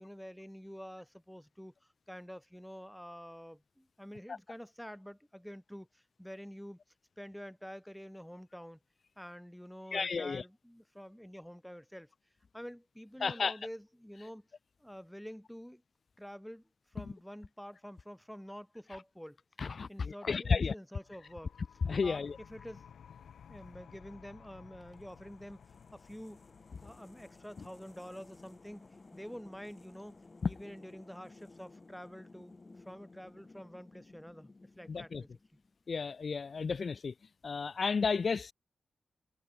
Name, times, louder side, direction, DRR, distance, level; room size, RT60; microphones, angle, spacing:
voice 1, 0.0-6.8 7.2-8.8 9.2-12.1 12.5-14.5 14.8-15.8 16.2-16.6 16.9-19.4 19.9-21.6 22.0-22.8 23.5-25.6 25.9-26.4 26.8-28.8 29.1-30.2 30.4-35.4, equal, ahead, 0.9 m, -48 dB
voice 2, 9.9-10.4 13.2-13.5 19.6-20.7 21.9-22.4 34.9-35.2 35.9-37.1 37.4-38.5, left 5 dB, 45° left, 0.5 m, -32 dB
sound 1, 21.0-32.4, left 8 dB, 90° left, 7.5 m, -58 dB
sound 2, 24.8-35.9, left 3 dB, 25° left, 2.1 m, -57 dB
wide cardioid pair, 145°, 0 cm